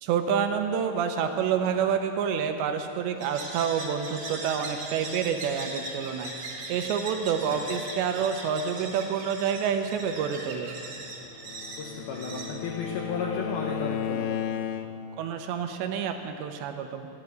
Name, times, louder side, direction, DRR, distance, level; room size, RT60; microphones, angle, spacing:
voice 1, 0.0-6.3 6.7-10.7 15.2-17.1, right 7 dB, 80° right, 6 dB, 2.8 m, -28 dB
sound 1, 3.2-13.4, right 2 dB, 50° right, 1.7 m, -40 dB
Bowed string instrument, 11.3-15.2, left 9 dB, 85° left, 3.1 m, -34 dB
voice 2, 11.8-14.4, left 4 dB, 70° left, -1 dB, 2.4 m, -33 dB
14.0 x 9.5 x 9.0 m, 2.7 s
omnidirectional pair, 5.6 m